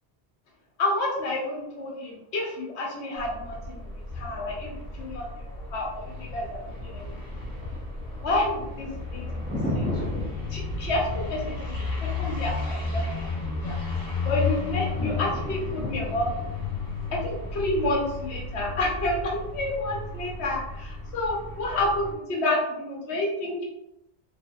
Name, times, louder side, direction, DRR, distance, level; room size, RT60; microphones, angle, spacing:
voice 1, 0.8-3.9 4.2-5.4 5.7-7.1 8.2-10.2 10.5-11.7 12.0-13.3 13.6-13.8 14.2-16.5 17.1-23.6, left 1 dB, 85° left, -1 dB, 1.0 m, -29 dB
sound 1, 3.2-22.1, left 3 dB, 45° left, 1.0 m, -33 dB
Thunder, 6.1-20.1, equal, 10° left, 0.4 m, -38 dB
2.7 x 2.6 x 2.2 m, 0.83 s
omnidirectional pair, 1.1 m